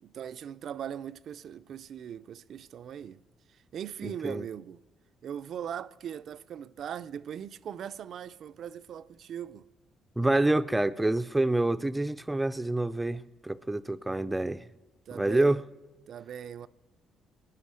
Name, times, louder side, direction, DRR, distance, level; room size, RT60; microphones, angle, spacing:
voice 1, 0.0-3.2 3.5-4.8 5.2-9.7 15.1-15.6 16.1-16.7, right 9 dB, 60° right, 0.5 m, -40 dB
voice 2, 4.0-4.4 10.2-14.7 15.1-15.6, right 2 dB, 10° right, 0.5 m, -27 dB
20.5 x 9.6 x 6.3 m
cardioid pair, 95°, 0 cm